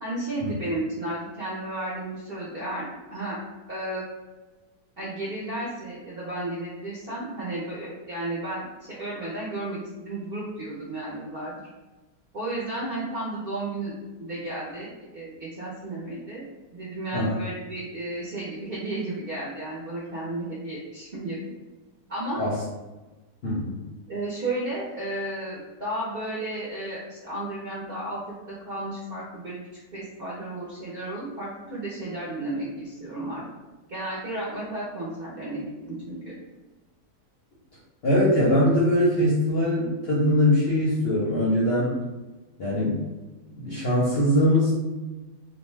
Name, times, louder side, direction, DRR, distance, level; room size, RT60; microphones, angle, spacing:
voice 1, 0.0-3.4 3.7-4.0 5.0-11.6 12.3-13.9 14.2-16.4 16.7-21.4 22.1-22.4 24.1-28.2 28.5-29.6 29.9-33.4 33.9-36.2, right 1 dB, 55° right, -8 dB, 0.6 m, -33 dB
voice 2, 23.4-23.8 38.0-42.0 42.6-43.0 43.6-44.7, left 1 dB, 55° left, -7 dB, 0.7 m, -22 dB
2.6 x 2.1 x 3.1 m, 1.2 s
omnidirectional pair, 1.7 m